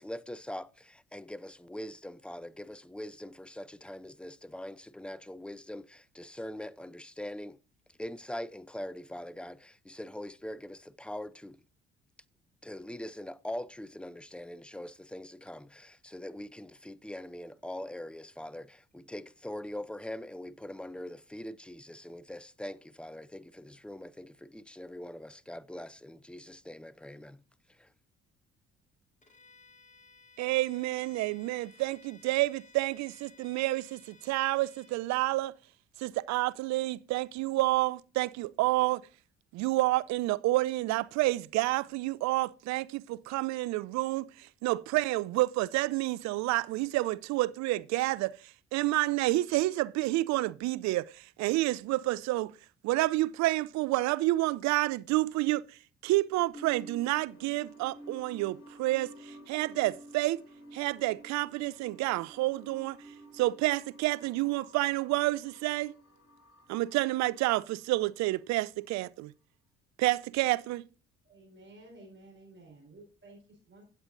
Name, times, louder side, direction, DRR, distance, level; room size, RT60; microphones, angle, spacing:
voice 1, 0.0-7.6 7.9-11.6 12.6-27.4 27.7-27.9, left 1 dB, 5° left, 0.4 m, -42 dB
Bowed string instrument, 29.2-35.0, left 4 dB, 25° left, 2.0 m, -59 dB
voice 2, 30.4-35.5 36.0-39.0 39.5-48.3 48.7-52.5 52.8-55.6 56.0-60.4 60.7-63.0 63.3-65.9 66.7-69.3 70.0-70.8, right 18 dB, 60° right, 0.5 m, -29 dB
sound 1, 56.5-68.4, right 1 dB, 45° left, 5.4 m, -51 dB
voice 3, 71.2-73.8, right 2 dB, 35° right, 4.5 m, -53 dB
15.5 x 8.0 x 2.6 m
hypercardioid pair, 50°, 32 cm